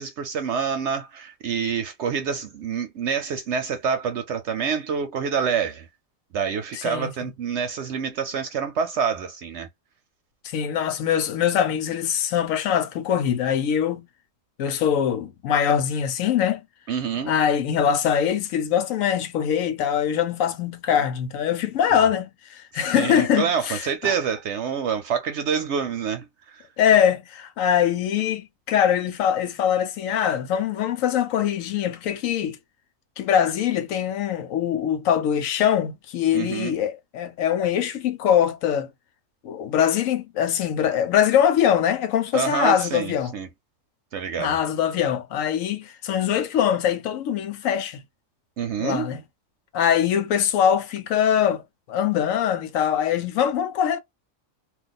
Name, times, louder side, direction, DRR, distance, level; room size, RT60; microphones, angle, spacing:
voice 1, 0.0-5.9 6.3-9.7 16.9-17.3 21.9-22.0 22.7-26.7 36.3-36.8 42.3-43.5 44.1-44.6 48.6-49.1, right 7 dB, 70° right, 0.8 m, -27 dB
voice 2, 6.7-7.1 10.4-14.1 14.6-16.6 17.3-24.1 26.8-32.6 33.2-38.9 39.4-43.3 44.4-48.0 48.8-49.2 49.7-51.6 51.9-54.0, left 9 dB, 90° left, 1.0 m, -23 dB
2.3 x 2.3 x 3.9 m
omnidirectional pair, 1.4 m